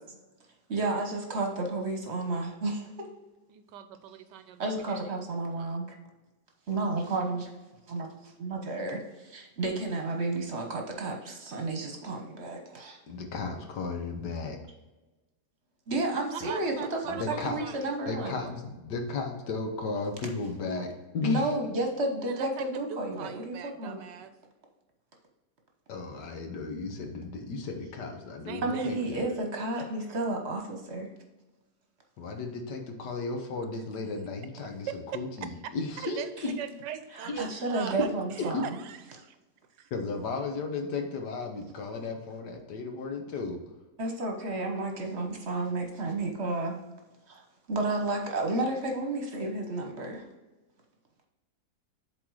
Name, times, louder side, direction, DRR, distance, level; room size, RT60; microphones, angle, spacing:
voice 1, 0.7-3.1 4.6-5.9 6.7-7.5 7.9-13.0 15.9-18.4 21.2-24.0 28.6-31.1 37.1-38.8 44.0-46.8 47.3-47.4 47.7-50.2, right 2 dB, 45° right, 2 dB, 1.1 m, -31 dB
voice 2, 3.5-5.0 5.6-5.8 16.3-18.5 22.3-24.3 28.5-29.0 36.0-36.3 36.6-37.9 38.4-39.4 39.8-39.9, right 9 dB, 85° right, 10 dB, 1.3 m, -41 dB
voice 3, 13.1-14.6 17.0-17.7 18.1-21.5 25.9-29.2 32.2-36.6 37.3-37.5 38.5-38.6 39.9-43.6, left 4 dB, 75° left, 4 dB, 1.7 m, -35 dB
7.7 x 3.9 x 4.7 m, 1.1 s
omnidirectional pair, 1.8 m